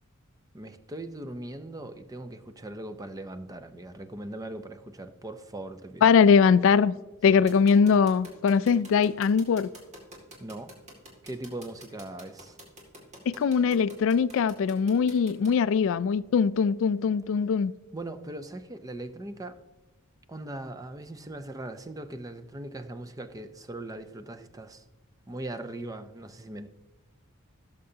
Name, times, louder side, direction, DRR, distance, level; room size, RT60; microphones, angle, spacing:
voice 1, 0.5-6.1 7.3-7.4 10.4-10.7 11.2-12.6 17.9-19.6 20.3-24.8 25.3-26.7, right 1 dB, 15° right, 0.5 m, -40 dB
voice 2, 6.0-6.9 7.2-9.7 13.3-17.7, left 6 dB, 65° left, 0.3 m, -21 dB
sound 1, 7.5-15.5, right 1 dB, 35° right, 2.2 m, -47 dB
16.5 x 6.7 x 2.8 m
head